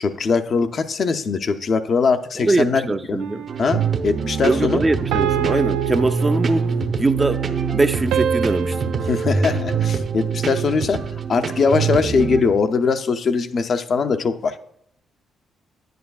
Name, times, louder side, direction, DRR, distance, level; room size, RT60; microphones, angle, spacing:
voice 1, 0.0-2.8 3.1-3.2 3.6-4.8 9.1-11.0 11.3-14.6, left 5 dB, 55° left, 0.5 m, -21 dB
voice 2, 2.4-3.5 4.4-6.7 7.0-7.5 7.7-8.8, right 2 dB, 25° right, 0.4 m, -21 dB
sound 1, 3.2-3.9 5.1-6.9 8.1-10.5, right 10 dB, 85° right, 0.4 m, -28 dB
sound 2, 3.5-12.4, right 5 dB, 55° right, 0.8 m, -24 dB
10.0 x 9.2 x 2.3 m
supercardioid pair, 65°, 0 cm